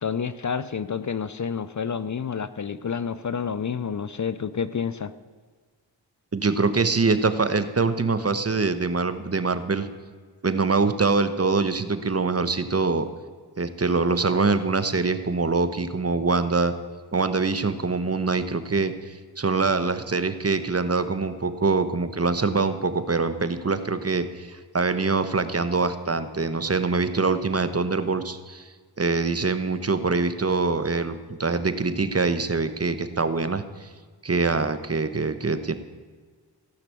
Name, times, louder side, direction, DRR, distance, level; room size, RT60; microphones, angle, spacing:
voice 1, 0.0-5.1, left 6 dB, 40° left, 15 dB, 0.6 m, -29 dB
voice 2, 6.3-9.9 10.4-13.1 13.6-16.7 17.1-28.6 29.0-33.9 34.2-35.7, right 4 dB, 35° right, 11 dB, 1.1 m, -24 dB
16.0 x 5.9 x 8.4 m, 1.5 s
cardioid pair, 55°, 43 cm